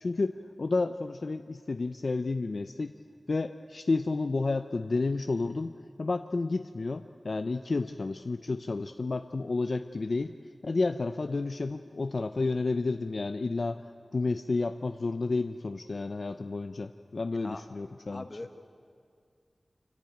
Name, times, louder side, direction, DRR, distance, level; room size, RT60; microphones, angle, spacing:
voice 1, 0.0-2.9 3.3-5.7 6.0-10.4 10.6-13.8 14.1-18.3, left 3 dB, 65° left, 8 dB, 0.5 m, -31 dB
voice 2, 18.1-18.6, left 2 dB, 35° left, 7 dB, 1.4 m, -40 dB
26.0 x 14.5 x 9.3 m, 2.2 s
wide cardioid pair, 75°, 0 cm